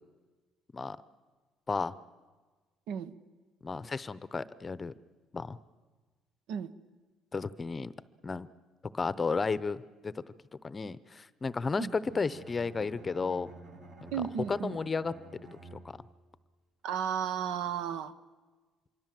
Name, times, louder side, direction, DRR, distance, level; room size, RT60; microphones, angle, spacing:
voice 1, 3.6-4.9 5.3-5.6 7.3-7.9 8.2-8.5 8.9-10.2 10.6-13.5 14.0-14.1 14.5-15.1 15.7-16.0, left 4 dB, 25° left, 16 dB, 0.7 m, -33 dB
Bowed string instrument, 11.9-16.3, right 2 dB, 65° right, 6.0 m, -51 dB
voice 2, 14.1-14.8 16.8-18.1, right 8 dB, 80° right, 13 dB, 1.2 m, -34 dB
26.5 x 23.5 x 7.7 m, 1.3 s
cardioid pair, 125°, 0 cm